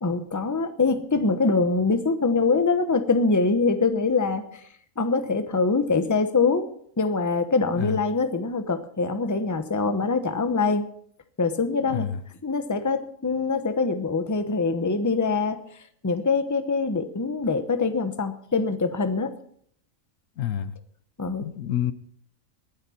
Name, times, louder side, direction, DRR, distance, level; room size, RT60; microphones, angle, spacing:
voice 1, 0.0-4.7 5.0-6.7 7.0-10.9 11.4-12.1 12.4-15.6 16.0-19.3 21.2-21.5, left 4 dB, 15° left, 9 dB, 0.8 m, -24 dB
voice 2, 11.9-12.2 20.4-20.7 21.4-21.9, left 10 dB, 75° left, 14 dB, 1.1 m, -28 dB
19.5 x 10.0 x 4.3 m, 0.63 s
omnidirectional pair, 1.4 m